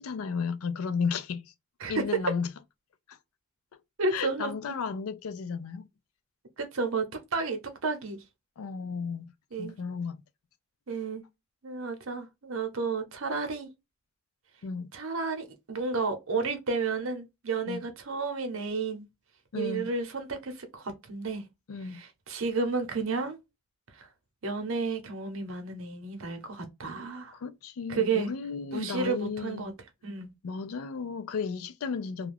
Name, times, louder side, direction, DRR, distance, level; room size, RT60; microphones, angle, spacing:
voice 1, 0.0-1.5 1.9-2.5 3.1-3.2 4.1-5.9 8.6-9.3 9.6-10.2 14.6-14.9 17.7-17.8 19.5-19.9 21.7-22.0 27.3-29.7 30.4-32.3, left 5 dB, 90° left, 0.4 m, -33 dB
voice 2, 4.0-4.5 6.6-7.0 7.3-8.2 9.5-9.7 10.9-11.2 11.6-13.7 14.9-19.1 19.5-21.4 21.8-23.4 24.0-24.1 24.4-27.4 27.9-28.3 28.7-29.7 30.0-30.3, right 4 dB, 75° right, 0.8 m, -32 dB
2.4 x 2.2 x 3.2 m
head